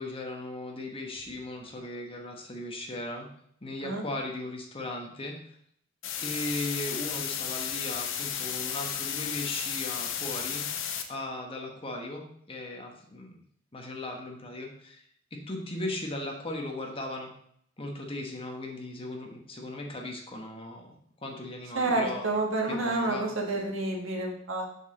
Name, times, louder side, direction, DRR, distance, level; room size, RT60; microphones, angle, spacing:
voice 1, 0.0-3.3 3.6-5.4 6.2-10.6 11.1-13.4 13.7-15.0 15.3-17.3 17.8-21.0 21.2-22.3 22.7-23.3, left 2 dB, 30° left, 1 dB, 1.3 m, -37 dB
sound 1, 6.0-11.0, left 8 dB, 70° left, 0.8 m, -33 dB
voice 2, 21.7-24.6, right 2 dB, 75° right, 1 dB, 1.6 m, -29 dB
7.1 x 6.4 x 3.8 m, 0.67 s
head